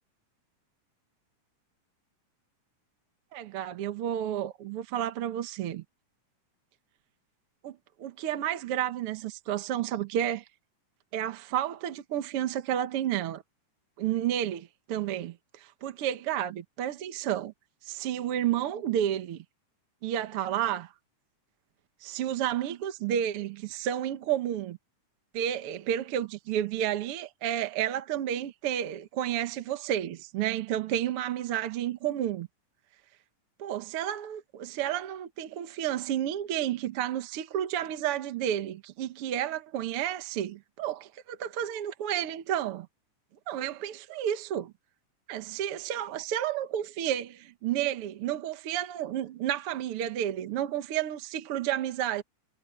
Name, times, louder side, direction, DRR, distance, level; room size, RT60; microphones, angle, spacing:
voice 1, 3.3-5.8 7.6-10.4 11.1-13.4 14.0-17.5 17.8-19.4 20.0-20.9 22.0-24.8 25.3-32.5 33.6-42.9 43.5-44.7 45.3-52.2, right 11 dB, 60° right, 1.7 m, -31 dB
omnidirectional pair, 3.6 m